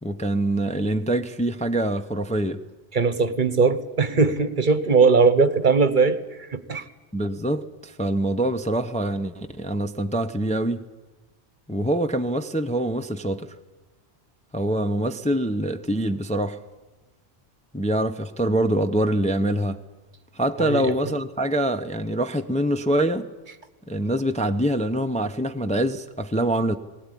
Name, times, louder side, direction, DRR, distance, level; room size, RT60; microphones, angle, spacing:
voice 1, 0.0-2.6 7.1-10.8 11.7-13.5 14.5-16.6 17.7-19.8 20.3-23.3 23.9-26.8, right 1 dB, 10° left, 0.7 m, -24 dB
voice 2, 2.9-6.9 20.6-20.9, right 4 dB, 50° right, 1.2 m, -20 dB
19.5 x 18.5 x 9.9 m
omnidirectional pair, 1.1 m